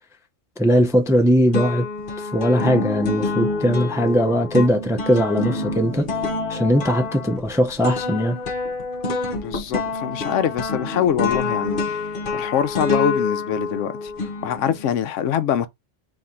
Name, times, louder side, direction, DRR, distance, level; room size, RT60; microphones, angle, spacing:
voice 1, 0.6-1.9 2.2-6.1 6.5-8.4, equal, 5° right, 0.4 m, -19 dB
sound 1, 0.7-1.2 1.5-14.9, left 3 dB, 50° left, 1.0 m, -27 dB
voice 2, 9.3-14.1 14.4-15.7, left 9 dB, 80° left, 0.9 m, -24 dB
4.2 x 2.7 x 3.7 m
omnidirectional pair, 1.3 m